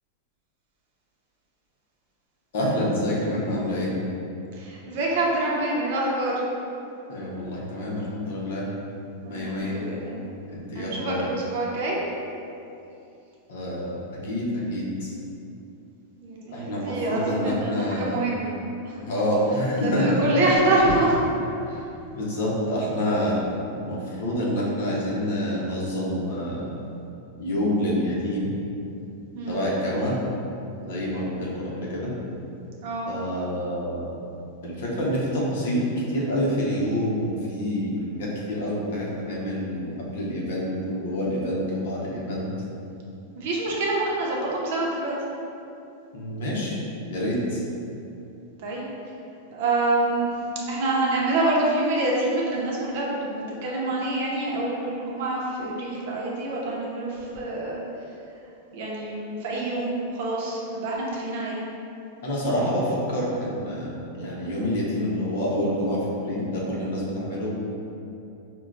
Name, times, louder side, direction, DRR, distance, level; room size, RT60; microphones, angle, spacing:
voice 1, 2.5-3.9 7.1-8.7 9.3-9.8 10.5-11.2 13.5-15.1 16.5-18.2 19.0-20.3 22.1-23.4 23.8-26.7 27.4-28.5 29.5-30.1 30.8-32.1 33.1-34.1 34.6-42.5 46.1-46.8 47.1-47.6 62.2-67.5, equal, 60° left, -5 dB, 0.8 m, -27 dB
voice 2, 4.5-6.4 9.2-10.2 10.7-12.0 16.2-18.5 18.8-19.0 19.8-21.2 21.6-21.9 29.3-29.6 32.8-33.1 43.3-45.1 48.6-48.8 49.5-50.3 50.7-57.8 58.7-61.6, right 2 dB, 50° right, -4 dB, 0.6 m, -26 dB
5.4 x 2.2 x 2.4 m, 2.7 s
supercardioid pair, 175°, 0 cm